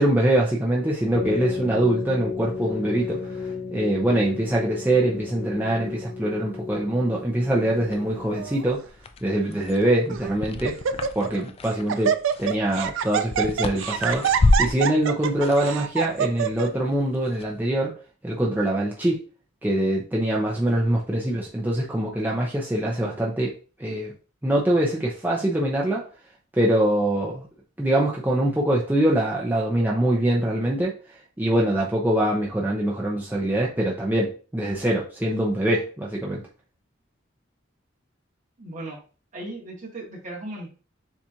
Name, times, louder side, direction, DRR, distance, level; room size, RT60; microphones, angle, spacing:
voice 1, 0.0-3.4 3.7-8.8 9.2-10.8 11.2-18.0 18.2-19.2 19.6-23.5 23.8-24.1 24.4-26.0 26.5-27.5 27.8-36.4, right 1 dB, 10° right, -3 dB, 0.6 m, -24 dB
sound 1, 1.1-8.6, left 5 dB, 55° left, 1.3 m, -33 dB
sound 2, 7.7-17.6, left 2 dB, 30° left, 0.3 m, -30 dB
Laughter, 8.3-8.7 9.5-9.6 10.1-10.4 10.6-11.4 11.7-16.7, right 8 dB, 65° right, 0.4 m, -26 dB
voice 2, 38.6-39.0 39.3-40.7, right 1 dB, 40° right, -2 dB, 1.5 m, -36 dB
7.1 x 2.5 x 2.8 m, 0.37 s
head